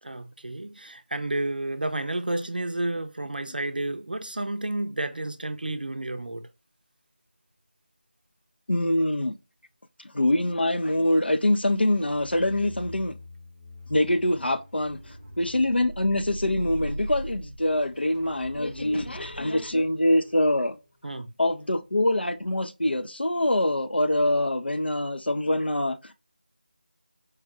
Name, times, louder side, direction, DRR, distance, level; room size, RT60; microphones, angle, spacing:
voice 1, 0.0-6.5 21.0-21.3, right 2 dB, 60° right, 0.5 m, -31 dB
voice 2, 8.7-9.3 10.0-13.2 13.9-20.8 21.4-26.2, left 1 dB, 80° left, 0.6 m, -24 dB
sound 1, 11.7-22.0 22.4-22.6, equal, 10° right, 0.7 m, -41 dB
4.7 x 2.2 x 2.8 m
figure-of-eight pair, 165°, 5 cm